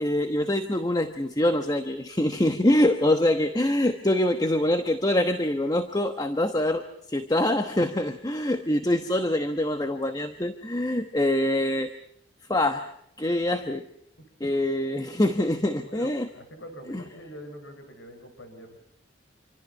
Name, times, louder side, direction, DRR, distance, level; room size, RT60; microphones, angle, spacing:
voice 1, 0.0-6.8 7.1-11.9 12.5-12.9 13.2-13.8 14.4-16.3 16.9-17.0, left 1 dB, 20° left, 8 dB, 1.1 m, -24 dB
voice 2, 15.8-18.8, equal, 90° left, 6 dB, 5.9 m, -44 dB
27.0 x 25.5 x 5.5 m, 0.71 s
head